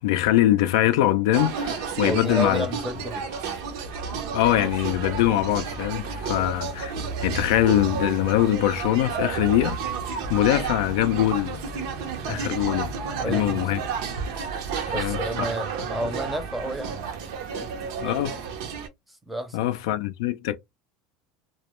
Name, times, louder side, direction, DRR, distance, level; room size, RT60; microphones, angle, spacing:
voice 1, 0.0-2.7 4.3-6.9 7.2-9.8 10.3-11.6 12.3-12.9 13.2-13.8 14.9-15.2 18.0-18.4 19.5-20.6, left 13 dB, 80° left, 0.3 m, -23 dB
sound 1, 1.3-18.9, right 6 dB, 75° right, 0.7 m, -31 dB
voice 2, 2.1-3.3 6.3-6.5 12.2-12.5 13.1-13.6 14.9-17.0 17.6-18.2 19.1-19.7, equal, 5° right, 0.5 m, -32 dB
sound 2, 9.6-13.9, left 7 dB, 40° left, 0.7 m, -47 dB
2.2 x 2.1 x 2.9 m
supercardioid pair, 125°, 2 cm